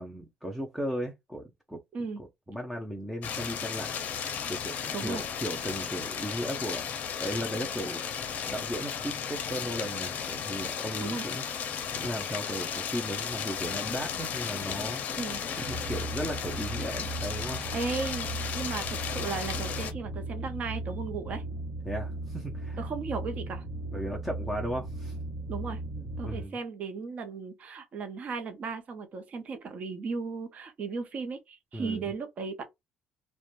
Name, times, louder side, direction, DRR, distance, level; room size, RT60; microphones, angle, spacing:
voice 1, 0.0-1.8 2.2-4.0 4.5-8.0 8.4-11.4 11.9-15.0 15.5-17.6 21.8-22.9 23.9-25.2 25.9-26.5 31.7-32.1, equal, 5° right, 0.5 m, -36 dB
sound 1, 3.2-19.9, left 7 dB, 55° left, 0.5 m, -35 dB
sound 2, 15.6-26.4, right 2 dB, 70° right, 0.8 m, -37 dB
voice 2, 17.7-21.4 22.8-23.6 25.5-25.8 26.2-32.6, right 4 dB, 45° right, 0.6 m, -36 dB
2.4 x 2.1 x 2.9 m
cardioid pair, 120°, 3 cm